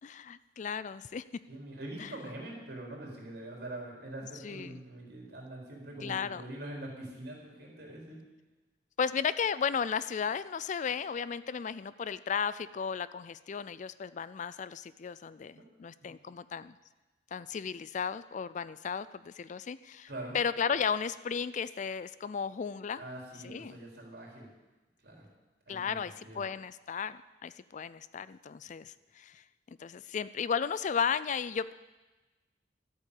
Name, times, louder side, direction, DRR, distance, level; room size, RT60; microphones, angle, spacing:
voice 1, 0.0-1.2 2.0-2.1 4.4-4.8 6.0-6.4 9.0-16.8 17.3-20.1 20.3-23.0 23.4-23.8 25.7-29.4 29.7-31.7, left 6 dB, 45° left, 16 dB, 0.4 m, -34 dB
voice 2, 1.5-8.2 15.6-15.7 16.0-16.1 20.1-20.4 22.9-24.5 25.0-25.3 25.7-26.4, right 1 dB, 60° right, -1 dB, 4.0 m, -44 dB
13.0 x 8.4 x 8.4 m, 1.1 s
head